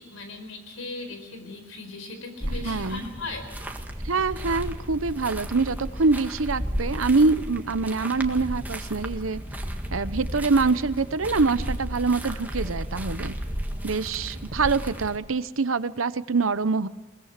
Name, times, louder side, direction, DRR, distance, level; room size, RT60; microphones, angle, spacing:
voice 1, 0.0-3.5, left 2 dB, 80° left, 7 dB, 4.6 m, -38 dB
sound 1, 2.4-15.2, equal, 10° right, 1.8 m, -34 dB
voice 2, 2.6-3.0 4.0-9.4 9.9-13.3 13.8-16.9, right 4 dB, 80° right, 15 dB, 0.9 m, -25 dB
22.0 x 20.0 x 6.6 m, 1.3 s
head